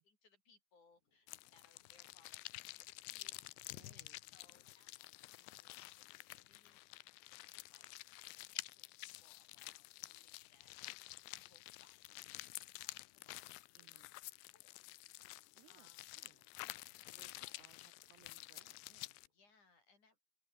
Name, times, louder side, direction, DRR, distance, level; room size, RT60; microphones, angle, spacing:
voice 1, 0.0-6.9 7.5-7.9 8.4-14.1 14.5-14.9 15.7-16.1 17.4-17.7 19.3-20.2, left 4 dB, 40° left, 6.9 m, -72 dB
sound 1, 0.9-19.6, left 4 dB, 65° left, 9.8 m, -87 dB
sound 2, 1.3-19.3, left 21 dB, 85° left, 2.6 m, -51 dB
voice 2, 3.7-4.2 13.8-14.1 15.6-19.2, right 19 dB, 85° right, 2.4 m, -69 dB
omnidirectional pair, 5.2 m